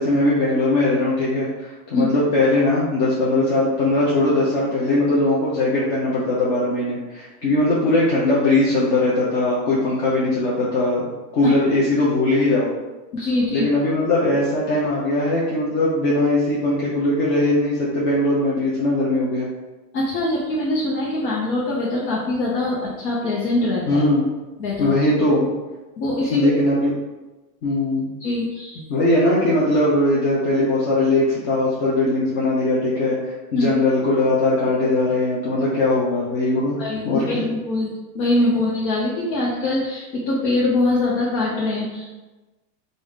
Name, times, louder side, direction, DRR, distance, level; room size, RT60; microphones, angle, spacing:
voice 1, 0.0-11.1 11.3-12.7 13.5-19.5 23.9-24.2 24.8-25.5 26.3-26.9 27.6-28.1 28.9-36.8 37.0-37.5, left 2 dB, 40° left, -6 dB, 0.6 m, -20 dB
voice 2, 13.1-13.7 19.9-24.0 24.6-24.9 26.0-26.5 28.2-28.8 33.5-33.7 36.8-42.1, left 2 dB, 80° left, -5 dB, 1.0 m, -23 dB
3.5 x 2.6 x 3.6 m, 1.2 s
supercardioid pair, 170°, 50 cm